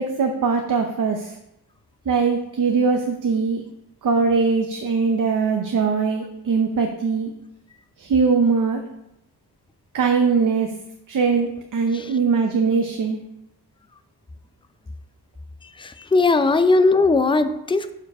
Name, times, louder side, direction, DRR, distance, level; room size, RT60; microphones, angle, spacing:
voice 1, 0.0-1.3 2.1-3.6 4.0-7.3 8.0-8.8 9.9-10.7 11.1-13.2, right 5 dB, 50° right, 4 dB, 0.7 m, -21 dB
voice 2, 15.8-17.9, left 3 dB, 15° left, 10 dB, 0.4 m, -18 dB
7.1 x 4.7 x 4.7 m, 0.87 s
wide cardioid pair, 105°, 40 cm